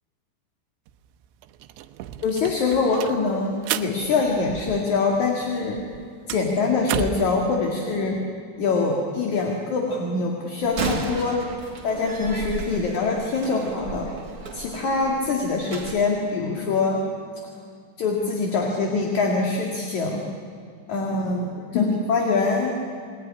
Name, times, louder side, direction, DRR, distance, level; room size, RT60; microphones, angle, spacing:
sound 1, 0.9-1.0 1.2-5.2 5.4-7.4, right 12 dB, 90° right, 3.2 m, -33 dB
voice 1, 2.2-5.8 6.3-8.2 8.6-11.4 11.8-14.1 14.5-17.0 18.0-20.2 20.9-21.5 21.7-22.8, left 4 dB, 50° left, 0 dB, 3.1 m, -24 dB
Slam, 10.6-16.0, right 5 dB, 40° right, 2.4 m, -34 dB
28.5 x 20.0 x 9.9 m, 2.4 s
omnidirectional pair, 5.1 m